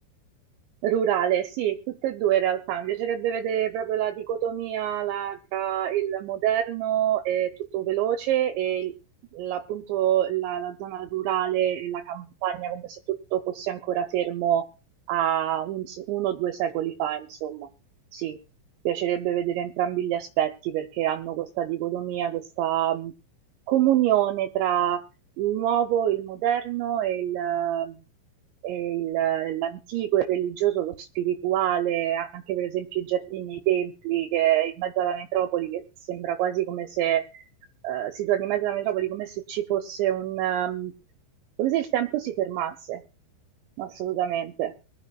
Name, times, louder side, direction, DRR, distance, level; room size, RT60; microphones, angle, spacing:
voice 1, 0.8-8.9 9.3-13.0 13.3-14.7 15.1-17.7 18.1-18.4 18.9-23.1 23.7-25.0 25.4-28.0 28.6-35.8 36.1-37.4 37.8-40.9 41.6-43.0 43.8-44.7, right 11 dB, 80° right, 6 dB, 2.9 m, -26 dB
22.5 x 12.0 x 2.3 m, 0.33 s
omnidirectional pair, 5.6 m